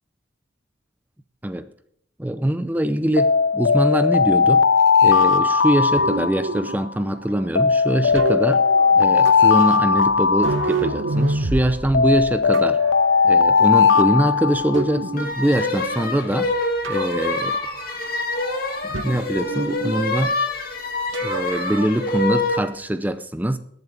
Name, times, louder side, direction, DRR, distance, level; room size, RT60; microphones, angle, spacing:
voice 1, 2.2-4.7 5.0-8.7 9.0-12.8 13.2-16.5 16.9-17.6 18.8-20.3 21.2-23.6, right 1 dB, 10° right, 12 dB, 0.5 m, -23 dB
Alarm, 3.2-6.9 7.5-11.3 11.9-15.2, left 5 dB, 80° left, 0.6 m, -18 dB
sound 1, 6.0-15.3 15.7-16.5 16.8-18.1 18.3-20.0 21.1-21.9, right 3 dB, 85° right, 1.0 m, -30 dB
sound 2, 15.2-22.7, left 2 dB, 50° left, 2.3 m, -26 dB
22.0 x 8.0 x 3.4 m, 0.73 s
head